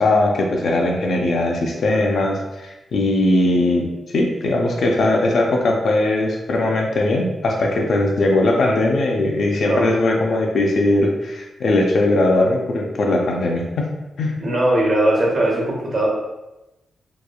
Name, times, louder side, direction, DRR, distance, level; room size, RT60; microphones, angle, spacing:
voice 1, 0.0-3.9 4.1-13.9 14.2-14.3, left 2 dB, 65° left, 0 dB, 0.4 m, -19 dB
voice 2, 14.4-16.1, right 1 dB, 45° right, -3 dB, 0.9 m, -19 dB
2.9 x 2.3 x 2.2 m, 0.98 s
wide cardioid pair, 125°, 0 cm